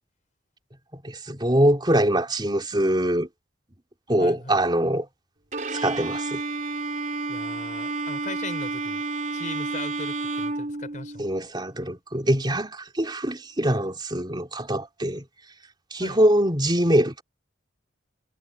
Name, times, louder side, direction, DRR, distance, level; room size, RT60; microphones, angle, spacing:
voice 1, 1.0-3.3 4.1-5.1 5.7-6.4 11.2-15.2 15.9-17.2, right 1 dB, 20° right, 3.8 m, -23 dB
voice 2, 4.2-4.6 7.3-9.0 9.3-11.3 16.0-16.2, left 2 dB, 40° left, 5.5 m, -39 dB
Bowed string instrument, 5.5-11.4, right 3 dB, 40° right, 4.4 m, -30 dB
head